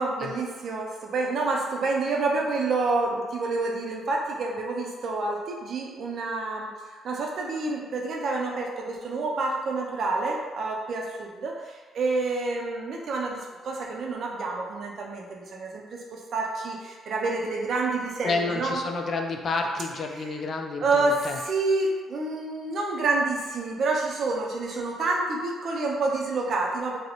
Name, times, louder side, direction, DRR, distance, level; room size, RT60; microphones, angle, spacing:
voice 1, 0.0-6.7 7.0-18.8 20.2-20.4 20.8-27.0, right 3 dB, 60° right, -1 dB, 0.4 m, -28 dB
voice 2, 18.2-21.4, left 3 dB, 50° left, 3 dB, 0.3 m, -30 dB
2.4 x 2.0 x 2.8 m, 1.4 s
cardioid pair, 90°, 0 cm